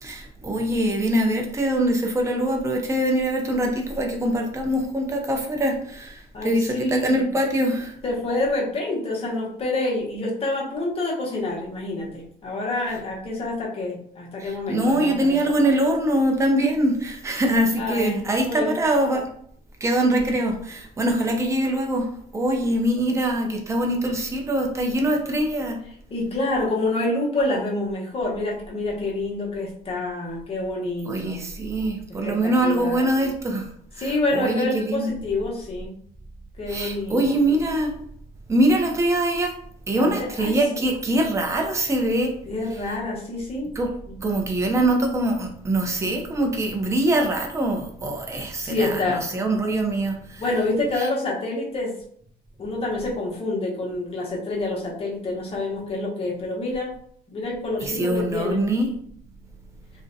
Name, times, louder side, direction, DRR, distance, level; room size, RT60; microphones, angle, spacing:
voice 1, 0.0-8.0 14.4-19.3 19.8-22.1 22.3-25.8 31.1-33.7 34.0-35.1 36.7-37.9 38.5-39.5 39.9-42.3 43.7-43.9 44.2-50.4 51.0-51.1 57.8-58.9, right 1 dB, 15° right, 2 dB, 0.5 m, -23 dB
voice 2, 6.3-7.2 8.0-15.4 17.8-18.7 26.1-31.5 32.2-33.0 34.0-35.9 36.6-37.2 40.0-40.8 42.4-43.8 44.1-44.2 48.6-49.3 50.4-51.9 52.6-56.9 57.3-58.7, left 2 dB, 35° left, -3 dB, 0.8 m, -27 dB
2.5 x 2.1 x 2.5 m, 0.63 s
cardioid pair, 110°, 17 cm